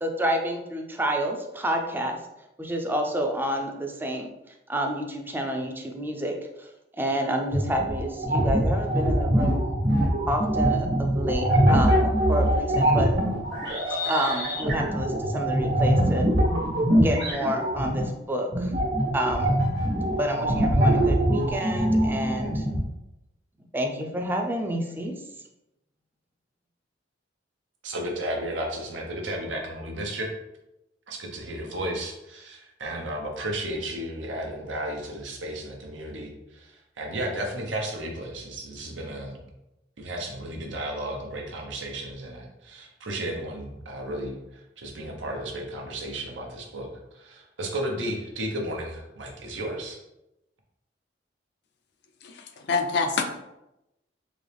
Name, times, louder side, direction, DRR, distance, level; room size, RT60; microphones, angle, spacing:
voice 1, 0.0-2.2 2.6-4.3 4.7-6.7 7.0-9.6 10.3-13.1 14.1-16.3 17.0-18.7 19.1-19.5 20.2-22.7 23.7-25.1, right 1 dB, 10° right, 2 dB, 0.4 m, -29 dB
sound 1, 7.5-18.0 18.5-22.8, right 1 dB, 65° right, 1.3 m, -23 dB
voice 2, 27.8-30.3 31.1-36.7 37.0-39.4 40.0-44.3 44.8-46.9 47.2-50.0, right 1 dB, 85° right, 1 dB, 0.9 m, -33 dB
voice 3, 52.2-53.4, left 4 dB, 60° left, 5 dB, 0.5 m, -27 dB
3.9 x 2.9 x 3.4 m, 0.90 s
head